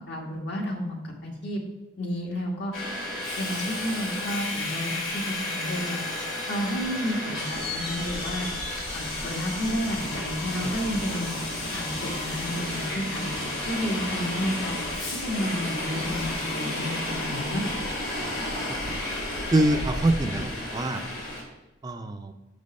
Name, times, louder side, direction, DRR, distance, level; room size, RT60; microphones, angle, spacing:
voice 1, 0.1-1.0 1.2-1.6 2.0-2.7 3.4-6.0 6.5-8.5 8.9-11.3 11.7-13.4 13.7-14.8 15.2-17.6, equal, 60° left, 0 dB, 1.6 m, -31 dB
Subway metro underground, 2.7-21.4, left 1 dB, 90° left, 2.7 m, -32 dB
voice 2, 19.5-21.0 21.8-22.3, right 1 dB, 20° right, 7 dB, 0.4 m, -25 dB
6.2 x 5.2 x 5.3 m, 1.0 s
head